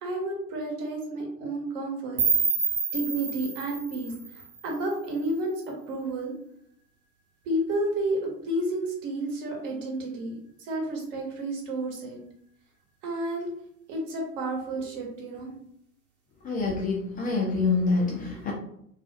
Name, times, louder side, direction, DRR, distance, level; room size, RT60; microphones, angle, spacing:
voice 1, 0.0-2.2 2.9-5.5 5.9-6.3 7.4-12.2 13.0-13.5 13.9-15.5, right 1 dB, 55° right, 0 dB, 1.0 m, -31 dB
sound 1, 2.2-5.1, right 5 dB, 35° right, 0.9 m, -28 dB
voice 2, 16.4-18.5, left 3 dB, 20° left, -2 dB, 0.3 m, -26 dB
2.3 x 2.3 x 2.6 m, 0.71 s
figure-of-eight pair, 80°, 44 cm